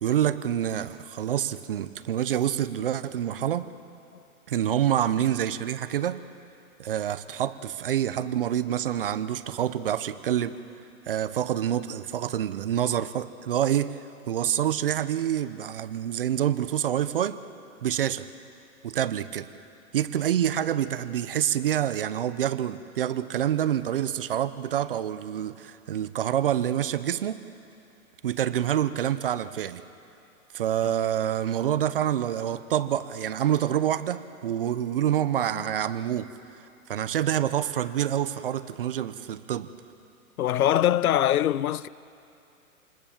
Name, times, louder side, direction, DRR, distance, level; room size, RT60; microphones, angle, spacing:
voice 1, 0.0-3.7 4.5-6.2 6.8-10.5 11.1-14.0 14.3-17.4 17.8-18.3 18.8-19.5 19.9-27.4 28.2-29.8 30.5-36.3 36.9-39.7, right 10 dB, 40° right, 0.7 m, -27 dB
voice 2, 40.4-41.9, left 11 dB, 75° left, 0.7 m, -23 dB
28.0 x 20.0 x 7.2 m
hypercardioid pair, 160°, 43 cm